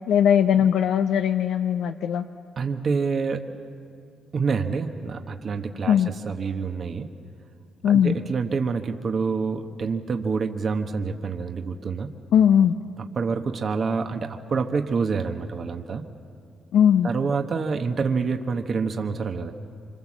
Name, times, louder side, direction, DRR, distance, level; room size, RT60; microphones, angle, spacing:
voice 1, 0.1-2.2 5.9-6.1 7.8-8.2 12.3-12.8 16.7-17.1, left 9 dB, 80° left, 6 dB, 0.7 m, -19 dB
voice 2, 2.6-3.5 4.3-7.1 7.8-12.1 13.0-16.0 17.0-19.5, right 5 dB, 50° right, 5 dB, 1.2 m, -27 dB
26.0 x 25.5 x 7.5 m, 2.4 s
cardioid pair, 90°, 0 cm